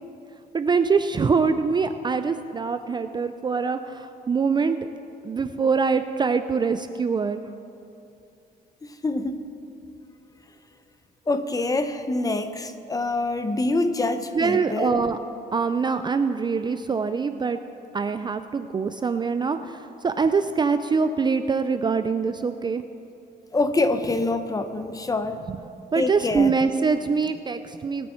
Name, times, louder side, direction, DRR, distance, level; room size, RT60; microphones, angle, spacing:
voice 1, 0.5-4.8 5.2-7.4 14.3-15.2 15.5-17.6 17.9-22.8 25.5-25.6 25.9-28.1, right 5 dB, 25° right, 9 dB, 0.4 m, -24 dB
voice 2, 9.0-9.5 11.3-15.0 23.5-25.4 26.0-26.5, left 2 dB, 20° left, 9 dB, 0.7 m, -25 dB
20.0 x 8.4 x 4.4 m, 2.7 s
cardioid pair, 120°, 18 cm